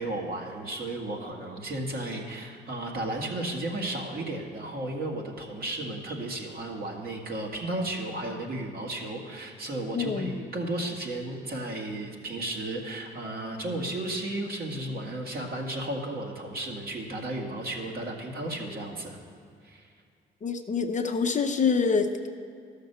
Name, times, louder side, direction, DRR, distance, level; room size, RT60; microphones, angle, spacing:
voice 1, 0.0-19.2 19.6-19.9, right 1 dB, 50° right, 0 dB, 1.9 m, -34 dB
voice 2, 9.9-10.4 20.4-22.3, left 5 dB, 40° left, 5 dB, 0.7 m, -26 dB
12.5 x 6.6 x 6.8 m, 2.4 s
cardioid pair, 90°, 20 cm